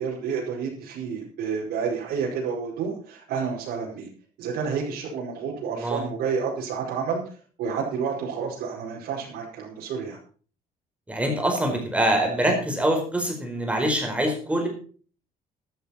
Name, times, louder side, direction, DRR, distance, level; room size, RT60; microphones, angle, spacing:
voice 1, 0.0-4.1 4.4-7.2 7.6-10.2, right 6 dB, 85° right, -4 dB, 5.0 m, -29 dB
voice 2, 5.7-6.0 11.1-14.7, right 1 dB, 10° right, 2 dB, 4.8 m, -24 dB
13.0 x 12.5 x 4.3 m, 0.41 s
cardioid pair, 145°, 16 cm